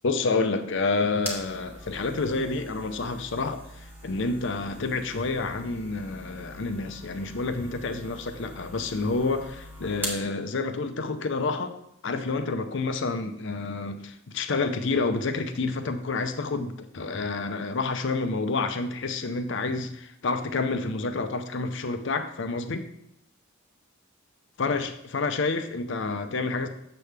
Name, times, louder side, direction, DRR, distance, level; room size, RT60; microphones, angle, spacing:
voice 1, 0.0-11.8 12.0-22.9 24.6-26.7, left 3 dB, 60° left, 9 dB, 0.6 m, -29 dB
sound 1, 0.7-10.3, right 1 dB, 10° right, 1.1 m, -42 dB
6.8 x 6.5 x 3.4 m, 0.77 s
head